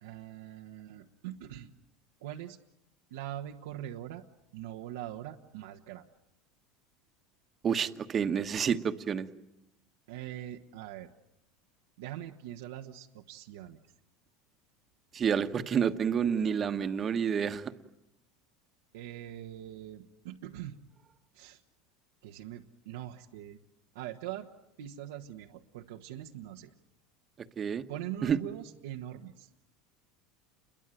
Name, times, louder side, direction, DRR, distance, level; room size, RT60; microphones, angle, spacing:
voice 1, 0.0-1.7 2.2-2.6 3.1-4.2 4.5-6.0 10.1-11.1 12.0-13.8 18.9-20.7 21.3-21.6 22.2-23.6 23.9-24.5 24.8-26.7 27.9-29.5, right 12 dB, 85° right, 2 dB, 1.3 m, -42 dB
voice 2, 7.6-9.3 15.1-17.7 27.6-27.8 28.2-28.4, right 7 dB, 30° right, 10 dB, 1.3 m, -29 dB
29.0 x 22.5 x 9.1 m, 0.84 s
supercardioid pair, 135°, 0 cm